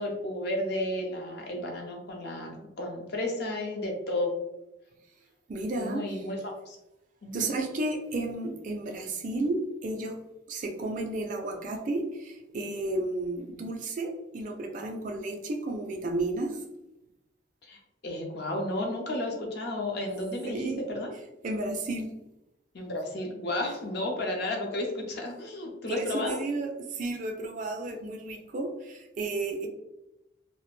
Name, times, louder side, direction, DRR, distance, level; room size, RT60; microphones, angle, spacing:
voice 1, 0.0-4.3 5.7-6.8 7.2-7.5 17.6-20.6 20.9-21.1 22.7-26.4, left 1 dB, 55° left, 1 dB, 0.5 m, -33 dB
voice 2, 5.5-6.3 7.3-10.2 10.5-16.6 20.4-20.8 21.4-22.1 25.9-29.7, right 2 dB, 40° right, 3 dB, 0.3 m, -32 dB
2.4 x 2.0 x 3.0 m, 0.92 s
head